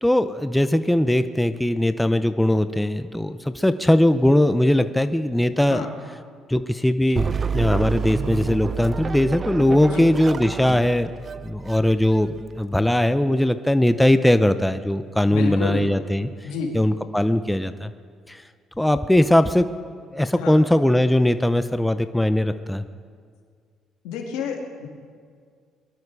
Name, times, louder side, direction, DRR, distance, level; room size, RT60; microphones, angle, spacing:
voice 1, 0.0-5.9 6.5-7.2 7.5-11.1 11.4-16.3 16.7-17.9 18.3-18.4 18.8-19.7 20.1-22.8, left 1 dB, 5° left, 10 dB, 0.7 m, -20 dB
sound 1, 7.2-12.6, right 6 dB, 40° right, 0.5 m, -29 dB
voice 2, 15.3-15.9 16.4-16.7 20.3-20.6 24.0-24.9, left 5 dB, 85° left, 1 dB, 2.4 m, -29 dB
22.0 x 12.0 x 4.8 m, 2.1 s
supercardioid pair, 80°, 0 cm